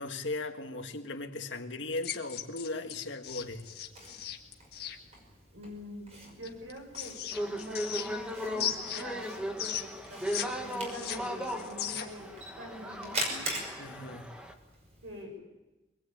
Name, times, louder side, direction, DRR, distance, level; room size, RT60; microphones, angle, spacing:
voice 1, 0.0-3.7 13.8-14.3, left 2 dB, 75° left, 1.9 m, -37 dB
sound 1, 2.0-5.0 6.4-8.3 8.6-10.5 10.7-12.2, left 10 dB, 55° left, 1.9 m, -37 dB
Camera, 3.2-15.2, right 1 dB, 35° right, 5.7 m, -43 dB
voice 2, 5.5-7.1 7.4-9.3 10.1-12.3 12.6-13.5 15.0-15.3, equal, 80° right, 7.2 m, -45 dB
sound 2, 7.3-14.5, equal, 5° right, 1.5 m, -37 dB
24.0 x 20.5 x 8.8 m
head